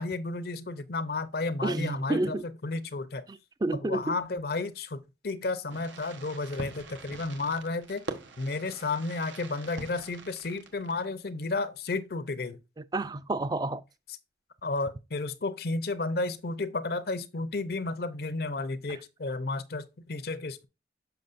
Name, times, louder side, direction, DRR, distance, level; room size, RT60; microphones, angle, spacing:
voice 1, 0.0-2.4 2.6-3.2 3.8-8.0 8.4-12.6 14.6-20.7, left 3 dB, 55° left, 0.6 m, -32 dB
voice 2, 1.6-2.4 3.3-4.2 12.8-13.8 18.9-19.0, right 2 dB, 20° right, 0.3 m, -30 dB
Fireworks, 5.7-11.3, right 3 dB, 85° right, 1.1 m, -44 dB
6.7 x 5.9 x 2.5 m
head